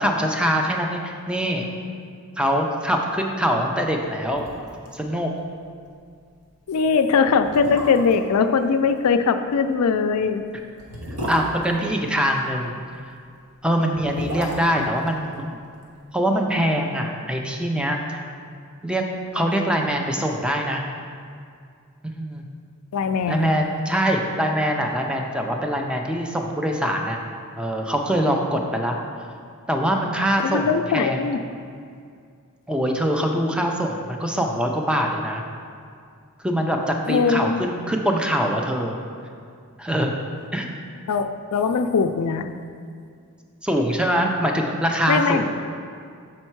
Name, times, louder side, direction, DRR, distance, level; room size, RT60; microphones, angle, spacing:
voice 1, 0.0-1.7 2.4-4.4 4.9-5.3 11.3-12.7 13.6-15.4 16.1-18.2 18.8-19.1 19.3-20.8 22.0-22.4 23.3-27.2 27.6-29.0 29.7-30.7 30.9-31.2 32.7-35.4 36.4-39.0 39.8-40.2 40.5-40.7 43.6-45.5, equal, 5° right, 2 dB, 0.5 m, -23 dB
sound 1, 3.9-4.0 4.3-4.9 5.2-5.3 5.7-5.9 6.6-6.7 7.3-8.3 9.8-12.5 13.7-16.0 16.2-16.3, right 1 dB, 80° right, 1.1 m, -34 dB
voice 2, 6.7-10.5 22.9-23.5 30.4-31.4 37.1-37.6 41.1-42.5 45.1-45.5, left 5 dB, 75° left, 8 dB, 0.4 m, -21 dB
6.4 x 4.4 x 4.5 m, 2.3 s
head